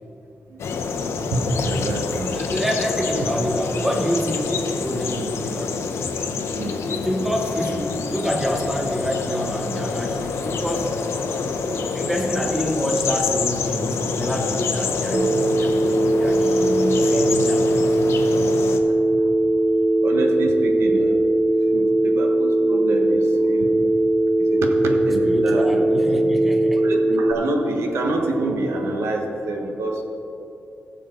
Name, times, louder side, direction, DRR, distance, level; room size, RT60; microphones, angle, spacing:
voice 1, 0.5-2.5 6.6-6.8 18.8-19.5 20.0-21.2 21.5-23.8 24.4-26.0 26.7-30.0, right 2 dB, 85° right, 2 dB, 1.3 m, -27 dB
sound 1, 0.6-18.8, left 5 dB, 90° left, 0.9 m, -27 dB
voice 2, 2.3-5.8 6.9-10.9 11.6-15.7 16.2-17.9 25.2-26.8, equal, 5° right, 1 dB, 1.1 m, -27 dB
Telephone, 15.1-27.3, right 1 dB, 25° right, 0.4 m, -19 dB
19.0 x 6.9 x 3.9 m, 2.9 s
wide cardioid pair, 155°, 4 cm